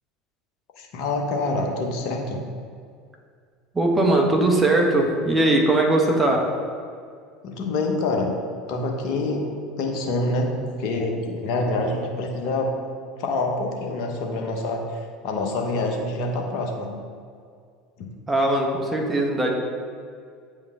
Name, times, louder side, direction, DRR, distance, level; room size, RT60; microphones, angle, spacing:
voice 1, 0.8-2.4 7.4-8.3 8.7-9.5 9.8-12.7 13.2-16.9 18.0-18.1, left 2 dB, 55° left, 1 dB, 1.1 m, -26 dB
voice 2, 3.7-6.5 18.3-19.5, right 2 dB, 20° right, 1 dB, 1.4 m, -20 dB
8.3 x 5.3 x 3.7 m, 2.2 s
hypercardioid pair, 75°, 0 cm